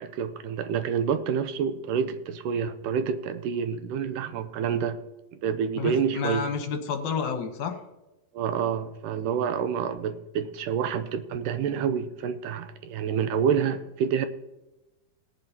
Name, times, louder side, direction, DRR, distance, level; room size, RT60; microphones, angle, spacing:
voice 1, 0.0-5.0 5.4-6.5 8.3-14.3, right 7 dB, 80° right, 10 dB, 2.1 m, -28 dB
voice 2, 5.8-7.8, left 6 dB, 65° left, 5 dB, 2.3 m, -30 dB
19.0 x 10.5 x 2.8 m, 0.98 s
omnidirectional pair, 4.0 m